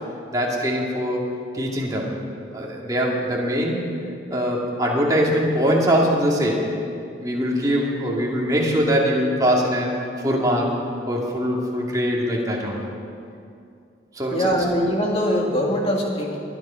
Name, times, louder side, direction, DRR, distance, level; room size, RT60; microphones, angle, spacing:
voice 1, 0.3-1.3 1.5-2.1 2.5-3.9 4.3-6.7 7.2-9.9 10.2-10.7 11.1-12.9 14.1-14.6, equal, 20° right, -3 dB, 2.3 m, -22 dB
voice 2, 14.3-16.4, equal, 30° left, -1 dB, 2.1 m, -22 dB
21.0 x 10.5 x 5.7 m, 2.4 s
head